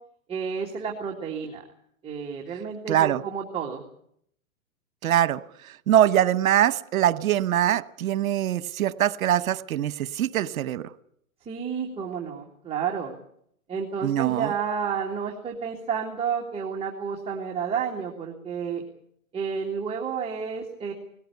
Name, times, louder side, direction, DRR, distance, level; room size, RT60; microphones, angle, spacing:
voice 1, 0.3-1.6 2.0-3.8 11.4-13.1 13.7-18.8 19.3-20.9, right 6 dB, 15° right, -1 dB, 2.2 m, -31 dB
voice 2, 2.9-3.2 5.0-5.4 5.9-10.8 14.0-14.5, right 11 dB, 70° right, 16 dB, 1.1 m, -23 dB
19.5 x 17.5 x 9.4 m, 0.69 s
hypercardioid pair, 145°, 43 cm